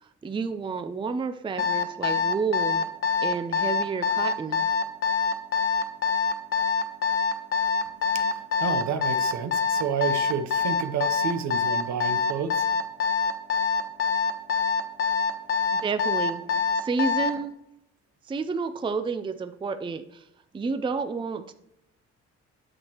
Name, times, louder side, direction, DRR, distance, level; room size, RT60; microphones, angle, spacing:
voice 1, 0.0-2.8 3.2-4.7 15.7-16.4 16.8-17.5 18.3-20.2 20.5-21.5, right 4 dB, 15° right, 9 dB, 0.4 m, -30 dB
Alarm, 1.6-17.4, left 5 dB, 45° left, 1.1 m, -24 dB
voice 2, 8.1-12.7, right 6 dB, 65° right, 9 dB, 0.8 m, -30 dB
8.9 x 6.2 x 3.0 m, 0.84 s
cardioid pair, 90°, 30 cm